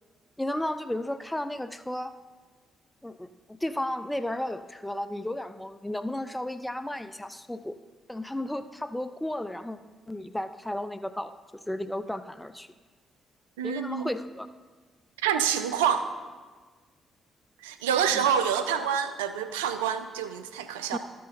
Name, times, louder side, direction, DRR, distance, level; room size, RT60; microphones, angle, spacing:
voice 1, 0.4-2.1 3.0-7.8 8.1-9.8 10.1-12.7 13.6-14.5 18.1-18.3 20.9-21.0, left 1 dB, 10° left, 11 dB, 0.5 m, -33 dB
voice 2, 13.6-14.1 15.2-16.1 17.6-21.0, right 8 dB, 85° right, 10 dB, 0.4 m, -27 dB
13.0 x 6.5 x 4.3 m, 1.4 s
hypercardioid pair, 45°, 0 cm